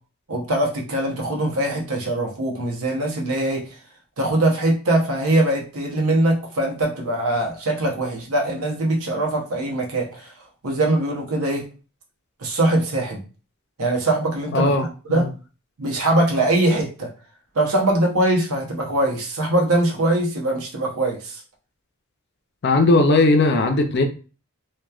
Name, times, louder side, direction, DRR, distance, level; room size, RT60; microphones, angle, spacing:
voice 1, 0.3-3.8 4.2-10.3 10.6-11.7 12.4-13.2 13.8-14.7 15.1-15.3 15.8-17.1 17.5-21.4, right 1 dB, 85° right, 0.8 m, -22 dB
voice 2, 14.5-14.8 15.1-15.2 22.6-24.1, left 2 dB, 50° left, 0.4 m, -17 dB
2.9 x 2.2 x 2.3 m
head